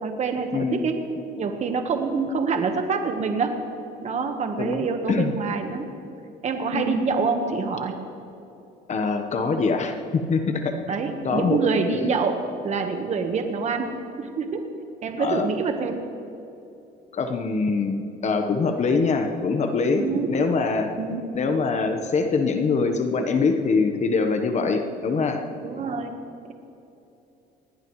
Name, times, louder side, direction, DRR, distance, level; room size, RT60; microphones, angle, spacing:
voice 1, 0.0-1.0 1.4-3.6 4.0-5.9 6.4-8.0 10.9-12.4 12.6-13.9 14.2-14.7 15.0-16.0 20.0-20.3 21.0-21.2 25.6-26.1, right 4 dB, 45° right, 5 dB, 1.3 m, -26 dB
voice 2, 0.5-0.9 4.6-5.3 6.7-7.0 8.9-10.8 11.2-11.6 11.9-12.2 15.2-15.5 17.1-20.9 21.3-25.4, left 4 dB, 45° left, 6 dB, 1.1 m, -24 dB
20.5 x 17.0 x 3.2 m, 2.8 s
cardioid pair, 110°, 17 cm